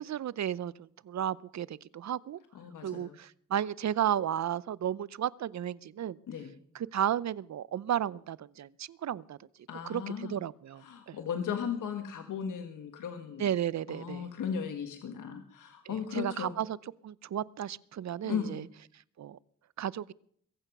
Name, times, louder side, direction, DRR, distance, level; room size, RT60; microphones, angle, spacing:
voice 1, 0.0-2.4 2.8-6.2 6.7-9.4 9.9-11.2 13.4-14.3 15.9-16.8 17.0-18.6 19.2-19.4 19.8-20.1, right 10 dB, 60° right, 21 dB, 0.6 m, -33 dB
voice 2, 2.5-3.2 6.3-6.5 9.7-10.4 10.8-13.5 13.9-16.6 18.2-18.7, left 7 dB, 85° left, 6 dB, 1.5 m, -36 dB
22.5 x 9.0 x 6.1 m, 0.63 s
cardioid pair, 60°, 31 cm